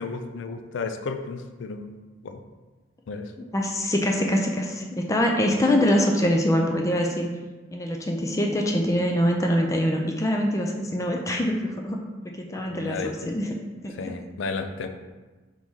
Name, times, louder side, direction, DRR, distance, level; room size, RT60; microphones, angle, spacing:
voice 1, 0.0-1.9 2.2-2.4 3.1-3.3 12.7-13.1 14.0-14.9, left 4 dB, 90° left, 7 dB, 0.4 m, -33 dB
voice 2, 3.5-7.3 7.7-12.0 12.3-13.6 13.8-14.1, equal, 15° left, 1 dB, 0.3 m, -24 dB
4.0 x 3.0 x 3.6 m, 1.3 s
head